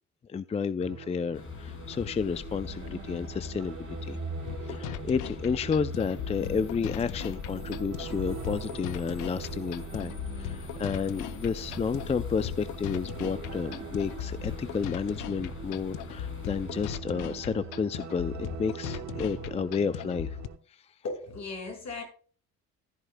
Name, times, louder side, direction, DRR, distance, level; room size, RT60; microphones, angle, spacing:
voice 1, 0.3-4.2 4.6-20.4, left 5 dB, 20° left, 13 dB, 0.4 m, -31 dB
sound 1, 0.8-20.6, right 8 dB, 65° right, 1.2 m, -43 dB
sound 2, 1.3-17.0, left 5 dB, 45° left, 2.3 m, -42 dB
sound 3, 4.5-20.5, left 12 dB, 85° left, 0.6 m, -39 dB
voice 2, 21.0-22.0, left 3 dB, 65° left, 1 dB, 5.8 m, -36 dB
14.5 x 10.5 x 2.2 m, 0.41 s
cardioid pair, 90°, 30 cm